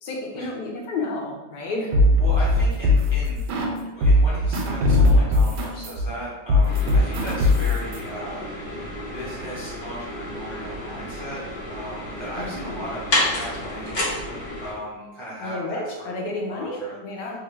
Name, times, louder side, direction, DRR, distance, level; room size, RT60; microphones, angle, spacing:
voice 1, 0.0-2.0 12.4-12.8 15.4-17.4, left 2 dB, 80° left, 0 dB, 1.2 m, -31 dB
sound 1, 1.9-3.8 4.0-8.0, left 2 dB, 85° right, 1.2 m, -19 dB
voice 2, 2.2-3.6 3.9-8.8 9.1-11.4 11.7-14.2 14.6-16.1 16.5-17.0, right 1 dB, 30° right, -9 dB, 0.5 m, -37 dB
sound 2, 6.6-14.7, left 1 dB, 50° left, 1.1 m, -31 dB
3.2 x 2.3 x 3.1 m, 1.1 s
omnidirectional pair, 1.8 m